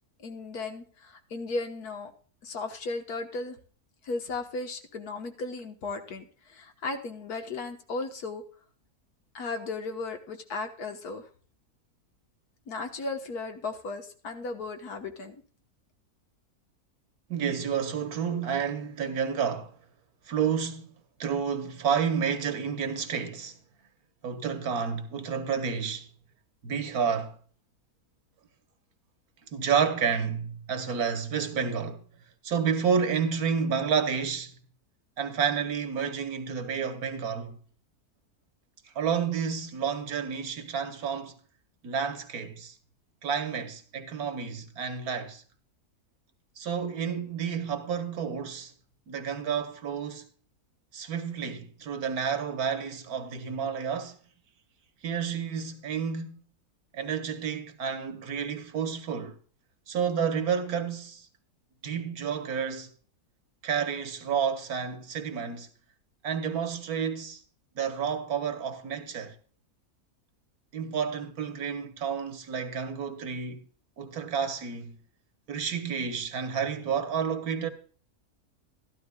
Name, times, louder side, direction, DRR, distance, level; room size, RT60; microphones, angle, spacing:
voice 1, 0.2-2.1 2.4-3.6 4.0-8.4 9.3-11.3 12.7-15.3, left 3 dB, 75° left, 1.8 m, -35 dB
voice 2, 17.3-19.7 20.3-20.9 21.2-23.5 24.2-26.1 26.6-27.4 29.5-32.0 32.4-34.5 35.2-37.6 38.9-41.3 41.8-42.7 43.2-45.4 46.6-48.7 49.1-50.3 50.9-54.2 55.0-56.4 56.9-59.4 59.9-61.3 61.8-62.9 63.6-65.7 66.2-67.4 67.7-69.4 70.7-73.6 74.0-75.0 75.5-77.7, right 7 dB, 70° right, 1.6 m, -30 dB
13.0 x 12.0 x 2.3 m
omnidirectional pair, 1.6 m